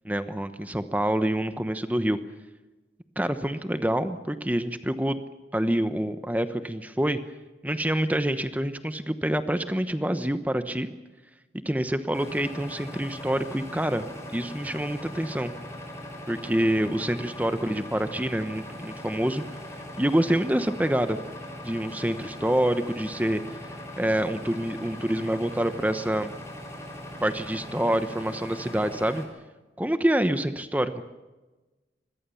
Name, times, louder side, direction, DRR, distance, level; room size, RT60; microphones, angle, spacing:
voice 1, 0.0-2.2 3.2-5.2 5.5-7.2 7.6-10.9 11.6-14.0 14.3-15.5 16.3-19.4 20.0-21.2 21.6-23.4 24.0-26.3 27.2-29.2 29.8-31.0, right 1 dB, 10° right, 10 dB, 1.0 m, -26 dB
sound 1, 12.1-29.3, left 1 dB, 15° left, 5.4 m, -40 dB
26.0 x 22.0 x 7.1 m, 1.2 s
head